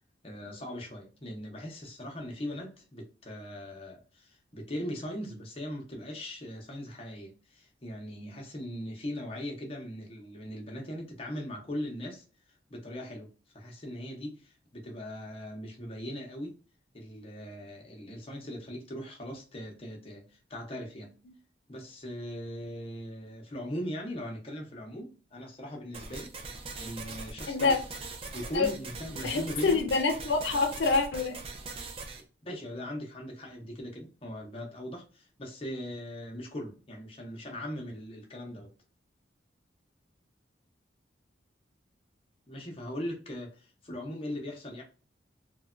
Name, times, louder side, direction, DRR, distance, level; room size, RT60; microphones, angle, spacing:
voice 1, 0.2-16.6 16.9-21.1 21.7-26.3 26.8-27.8 28.3-29.8 32.4-38.7 42.5-44.8, equal, 30° left, 0.6 m, -40 dB
sound 1, 25.9-32.2, right 3 dB, 30° right, 0.3 m, -41 dB
voice 2, 29.2-31.4, left 4 dB, 75° left, 0.4 m, -26 dB
3.2 x 2.1 x 2.4 m
head